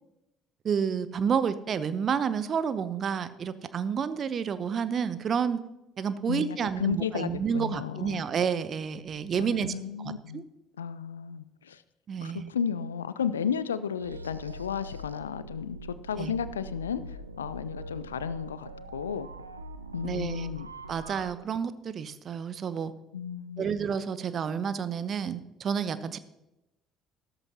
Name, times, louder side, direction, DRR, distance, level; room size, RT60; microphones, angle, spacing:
voice 1, 0.6-5.6 6.0-10.4 12.1-12.5 16.2-16.3 20.0-20.5 20.9-22.9 23.6-26.2, right 7 dB, 45° right, 14 dB, 0.8 m, -30 dB
voice 2, 6.3-8.2 9.4-10.4 10.8-11.8 12.2-19.3 19.9-20.7 23.1-23.7, left 7 dB, 80° left, 15 dB, 0.4 m, -33 dB
sound 1, 14.0-21.3, right 2 dB, 85° right, 0.4 m, -43 dB
14.0 x 13.5 x 2.9 m, 0.91 s
figure-of-eight pair, 55°, 0 cm